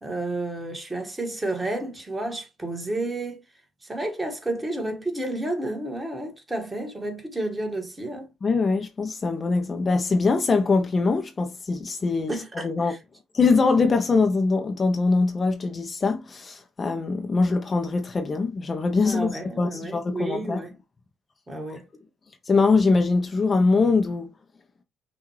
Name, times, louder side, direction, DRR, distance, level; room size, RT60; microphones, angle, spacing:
voice 1, 0.0-3.4 3.9-8.3 12.3-13.0 19.0-20.7 21.5-21.9, right 2 dB, 15° right, 1.6 m, -31 dB
voice 2, 8.4-12.9 13.3-20.6 22.5-24.3, left 4 dB, 35° left, 0.7 m, -23 dB
5.8 x 2.6 x 3.1 m
cardioid pair, 90°, 0 cm